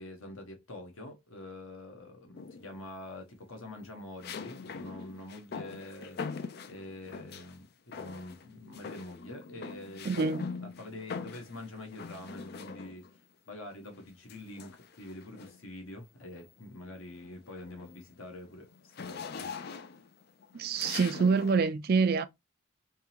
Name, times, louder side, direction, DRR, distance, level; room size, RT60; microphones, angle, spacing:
voice 1, 0.0-6.2 6.7-10.3 10.6-19.9, left 1 dB, 70° left, 1.2 m, -46 dB
sound 1, 2.4-2.9 4.2-7.6 7.9-8.5 8.7-13.2 14.3-15.7 16.2-16.5 16.8-21.6, left 5 dB, 45° left, 0.4 m, -43 dB
voice 2, 10.1-10.5 20.5-22.3, right 5 dB, 45° right, 0.4 m, -26 dB
3.6 x 2.9 x 2.8 m
head